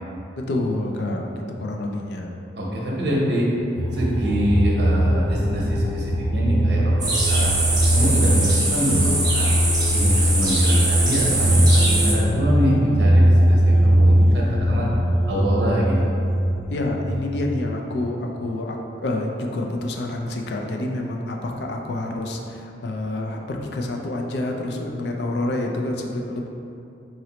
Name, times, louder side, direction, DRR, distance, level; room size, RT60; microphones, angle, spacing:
voice 1, 0.4-2.4 8.0-8.1 16.6-18.8 19.0-26.5, left 2 dB, 65° left, 1 dB, 0.4 m, -28 dB
voice 2, 2.6-3.5 3.9-7.5 7.9-9.5 9.9-14.9 15.3-16.2, equal, 70° right, -4 dB, 0.8 m, -24 dB
sound 1, 3.7-17.1, equal, 30° left, 0.7 m, -20 dB
sound 2, 7.0-12.1, right 2 dB, 20° right, 0.6 m, -23 dB
3.9 x 3.1 x 2.9 m, 2.6 s
head